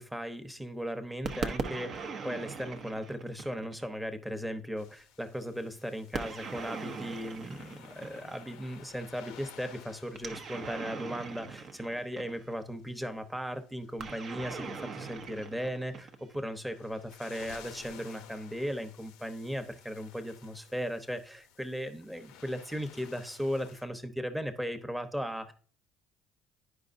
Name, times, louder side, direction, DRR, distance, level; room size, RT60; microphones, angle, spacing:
voice 1, 0.0-25.5, equal, 5° right, 0.9 m, -37 dB
sound 1, 1.2-3.9 6.1-8.5 10.2-12.6 14.0-16.4, right 4 dB, 50° right, 0.8 m, -40 dB
sound 2, 4.8-23.8, left 9 dB, 85° left, 0.6 m, -55 dB
9.6 x 4.9 x 2.6 m
supercardioid pair, 85°, 0 cm